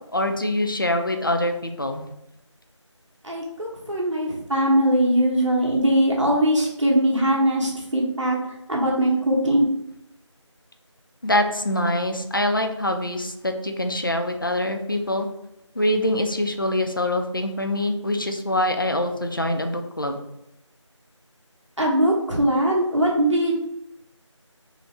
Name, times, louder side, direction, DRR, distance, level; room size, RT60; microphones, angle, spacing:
voice 1, 0.1-2.0 11.2-15.3 15.8-20.2, left 1 dB, 45° left, 6 dB, 0.4 m, -24 dB
voice 2, 3.2-8.4 8.7-9.7 21.8-23.5, right 1 dB, 70° right, -2 dB, 1.2 m, -21 dB
4.4 x 2.1 x 3.2 m, 0.83 s
figure-of-eight pair, 175°, 16 cm